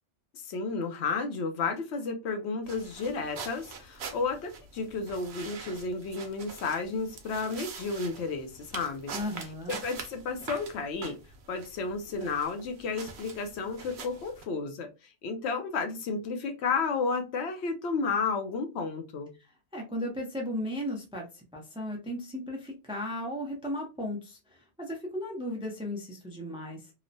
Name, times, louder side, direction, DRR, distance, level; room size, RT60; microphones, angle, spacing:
voice 1, 0.3-9.1 9.7-11.2 11.5-19.3, left 4 dB, 75° left, 0.9 m, -32 dB
sound 1, 2.6-14.4, right 5 dB, 75° right, 0.9 m, -44 dB
voice 2, 9.1-9.8 19.7-26.9, left 1 dB, 5° right, 0.4 m, -36 dB
2.9 x 2.0 x 2.5 m
omnidirectional pair, 1.1 m